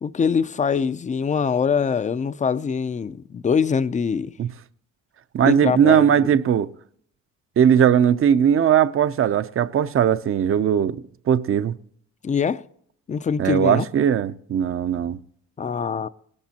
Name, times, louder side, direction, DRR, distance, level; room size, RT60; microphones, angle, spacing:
voice 1, 0.0-4.3 5.4-6.4 12.2-12.6 13.1-13.9 15.6-16.1, left 6 dB, 25° left, 0.4 m, -23 dB
voice 2, 5.3-6.7 7.6-11.8 13.4-15.2, right 8 dB, 45° right, 0.6 m, -19 dB
18.5 x 12.0 x 2.8 m
cardioid pair, 90°, 30 cm